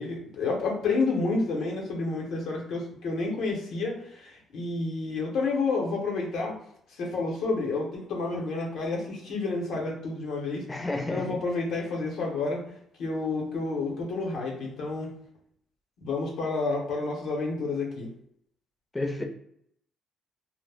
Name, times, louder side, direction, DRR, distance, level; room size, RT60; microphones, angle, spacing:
voice 1, 0.0-6.6 7.0-10.7 11.1-12.6 13.0-15.1 16.0-18.1, left 3 dB, 80° left, -2 dB, 0.8 m, -30 dB
voice 2, 10.7-11.4 18.9-19.2, left 2 dB, 20° left, 3 dB, 0.5 m, -31 dB
2.1 x 2.0 x 3.3 m, 0.71 s
cardioid pair, 90°, 0 cm